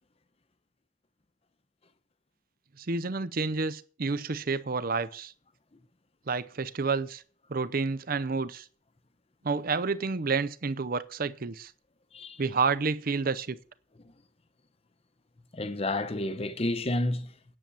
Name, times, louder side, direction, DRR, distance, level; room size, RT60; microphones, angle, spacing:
voice 1, 2.8-5.3 6.3-7.2 7.5-8.6 9.4-11.7 12.4-13.6, right 4 dB, 50° right, 0.6 m, -29 dB
voice 2, 15.5-17.3, left 2 dB, 30° left, 0.8 m, -30 dB
9.9 x 7.4 x 6.9 m
head